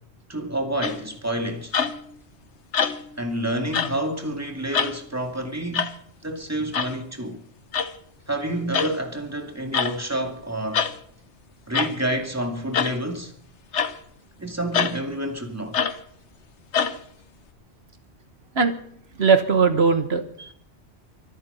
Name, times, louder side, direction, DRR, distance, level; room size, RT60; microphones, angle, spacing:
voice 1, 0.3-1.7 3.2-5.9 6.2-7.4 8.3-10.9 11.7-13.3 14.4-15.8, right 1 dB, 15° right, 2.4 m, -28 dB
sound 1, 0.8-1.1 1.7-2.1 2.7-3.2 3.7-4.0 4.7-5.0 5.7-5.9 6.7-6.9 7.7-7.9 8.7-9.0 9.7-10.0 10.7-11.0 11.7-12.0 12.7-13.0 13.7-14.0 14.7-15.0 15.7-16.0 16.7-17.0, left 7 dB, 85° left, 1.4 m, -25 dB
voice 2, 19.2-20.5, right 5 dB, 65° right, 1.4 m, -19 dB
25.0 x 9.0 x 5.6 m
omnidirectional pair, 1.1 m